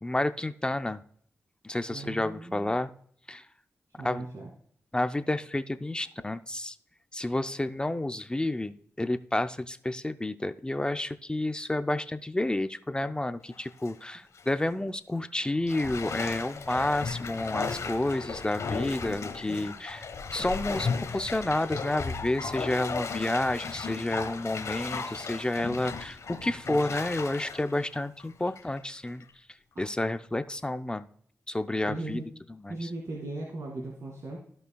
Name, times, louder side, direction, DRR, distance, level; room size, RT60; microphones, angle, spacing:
voice 1, 0.0-1.0 1.6-2.9 3.3-3.4 4.0-4.3 4.9-6.8 7.1-20.0 20.3-29.2 29.8-31.1 31.5-32.2 32.6-32.9, left 1 dB, 15° left, 10 dB, 0.5 m, -30 dB
voice 2, 1.9-2.7 4.0-4.5 29.8-29.9 31.9-32.2 32.7-34.4, right 2 dB, 60° right, -1 dB, 2.2 m, -37 dB
Bathtub (filling or washing), 13.5-13.9 14.4-14.5 15.7-28.8 29.2-29.3, left 5 dB, 65° left, 1.2 m, -35 dB
15.0 x 5.5 x 2.3 m, 0.63 s
cardioid pair, 65°, 6 cm